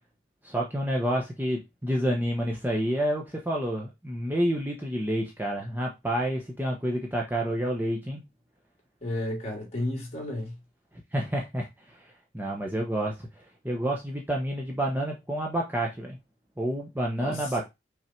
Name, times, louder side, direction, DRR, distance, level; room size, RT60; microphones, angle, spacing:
voice 1, 0.4-8.2 11.1-12.1 12.3-13.3 13.6-16.2 16.6-17.6, right 1 dB, 10° right, 0.9 m, -29 dB
voice 2, 9.0-10.5 17.2-17.6, left 1 dB, 35° left, 3.1 m, -32 dB
6.0 x 3.8 x 4.5 m
head